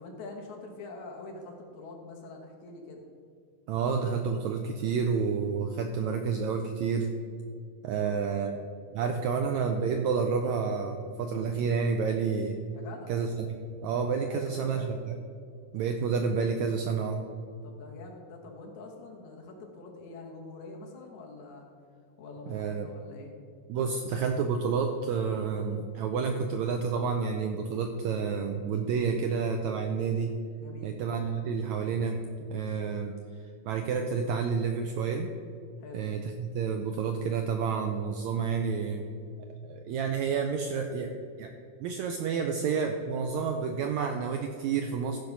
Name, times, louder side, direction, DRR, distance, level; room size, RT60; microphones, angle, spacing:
voice 1, 0.0-3.0 8.0-8.4 12.7-13.1 14.3-15.0 17.6-21.7 22.2-23.3 30.6-31.0 35.8-36.1, left 3 dB, 65° left, 0 dB, 2.5 m, -45 dB
voice 2, 3.7-7.1 7.8-8.5 8.9-12.6 13.1-15.0 15.7-17.2 22.5-22.9 23.7-30.3 30.8-32.2 32.5-33.1 33.6-35.3 35.9-39.0 39.6-41.1 41.4-41.5 41.8-45.2, right 5 dB, 90° right, 5 dB, 1.6 m, -29 dB
14.5 x 5.2 x 5.8 m, 2.3 s
omnidirectional pair, 3.9 m